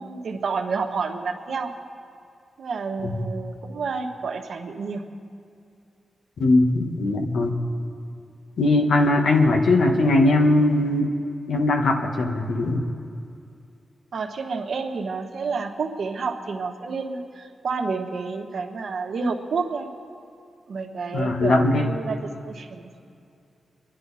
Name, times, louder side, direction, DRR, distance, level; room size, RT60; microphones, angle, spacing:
voice 1, 0.0-1.7 2.6-5.1 14.1-19.9 20.7-22.9, right 4 dB, 70° right, 3 dB, 1.3 m, -29 dB
voice 2, 6.4-7.6 8.6-11.1 11.5-12.8 21.1-21.9, left 2 dB, 85° left, 3 dB, 1.5 m, -20 dB
26.0 x 10.5 x 4.2 m, 2.5 s
wide cardioid pair, 130°, 0 cm